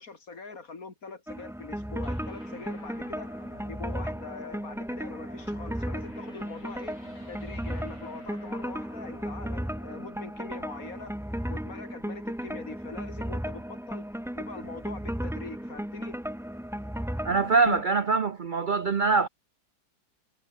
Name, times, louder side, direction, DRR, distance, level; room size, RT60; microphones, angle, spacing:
voice 1, 0.0-3.3 3.7-7.0 7.3-11.1 11.5-14.0 14.3-16.2, left 4 dB, 55° left, 3.1 m, -43 dB
sound 1, 1.3-17.8, equal, ahead, 0.8 m, -35 dB
sound 2, 2.0-11.4, left 2 dB, 90° left, 7.3 m, -52 dB
voice 2, 17.2-19.3, right 4 dB, 75° right, 0.4 m, -23 dB
omnidirectional pair, 1.8 m